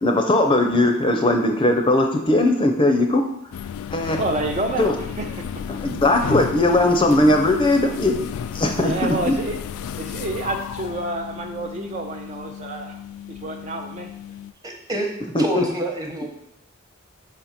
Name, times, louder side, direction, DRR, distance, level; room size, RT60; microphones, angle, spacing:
voice 1, 0.0-3.2 3.9-4.2 4.8-4.9 5.7-8.1 8.5-9.2 15.3-15.6, left 1 dB, 25° left, 4 dB, 0.6 m, -19 dB
sound 1, 3.5-14.5, left 8 dB, 90° left, 0.3 m, -33 dB
voice 2, 4.2-5.6 8.8-9.6 10.0-13.0 13.3-14.1, right 2 dB, 35° right, 3 dB, 0.4 m, -29 dB
voice 3, 14.6-16.3, right 1 dB, 15° right, 1 dB, 1.0 m, -28 dB
5.2 x 4.1 x 5.8 m, 0.78 s
head